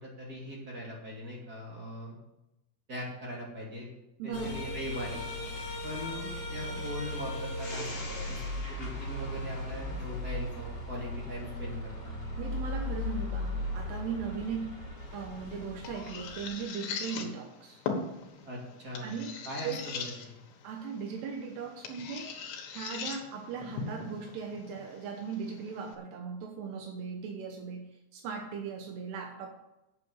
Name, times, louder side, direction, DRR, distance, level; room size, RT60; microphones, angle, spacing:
voice 1, 0.0-2.1 2.9-3.9 4.2-5.2 5.8-8.4 8.7-12.2 18.4-19.2 19.4-20.3, equal, 25° right, -3 dB, 2.6 m, -40 dB
voice 2, 4.2-4.5 6.7-6.8 12.4-14.7 15.1-17.8 19.0-19.4 19.6-19.9 20.6-22.4 22.7-29.5, right 6 dB, 80° right, 3 dB, 3.1 m, -38 dB
sound 1, 4.3-16.5, left 1 dB, 20° left, 1.7 m, -37 dB
sound 2, 15.0-26.0, left 5 dB, 85° left, 3.6 m, -41 dB
8.4 x 8.1 x 7.1 m, 0.91 s
omnidirectional pair, 4.8 m